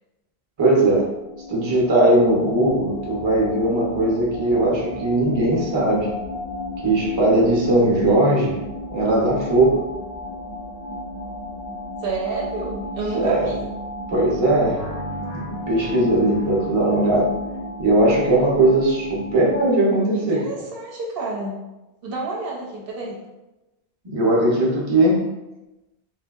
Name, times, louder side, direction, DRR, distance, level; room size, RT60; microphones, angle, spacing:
voice 1, 0.6-1.1 1.5-6.1 6.8-8.6 8.9-9.8 13.1-13.5 14.1-14.8 15.3-17.3 17.8-20.4 24.0-25.2, right 1 dB, 30° right, -4 dB, 0.6 m, -19 dB
sound 1, 1.0-19.8, left 1 dB, 40° left, 0.3 m, -33 dB
voice 2, 12.0-13.6 20.1-21.6 22.0-23.2, right 3 dB, 65° right, -2 dB, 0.8 m, -29 dB
sound 2, 14.6-17.5, right 1 dB, 55° left, 1.0 m, -39 dB
3.3 x 2.6 x 2.3 m, 1.0 s
omnidirectional pair, 1.0 m